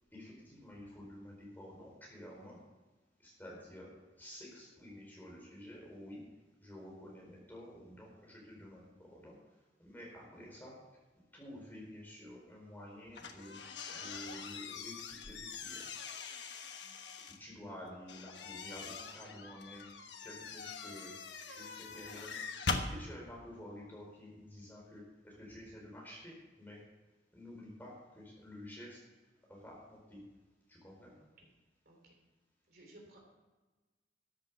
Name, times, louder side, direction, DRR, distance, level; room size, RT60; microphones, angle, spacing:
voice 1, 0.1-2.6 3.2-6.3 6.6-9.4 9.8-10.9 11.3-15.9 17.4-22.4 22.8-26.9 27.3-29.0 29.5-30.3 30.7-31.2, left 1 dB, 10° left, -3 dB, 4.4 m, -51 dB
sound 1, 13.1-17.4 18.1-22.9, left 4 dB, 75° left, 1.3 m, -42 dB
voice 2, 31.8-32.2 32.7-33.2, right 1 dB, 55° right, 0 dB, 3.3 m, -59 dB
13.5 x 8.4 x 6.9 m, 1.2 s
head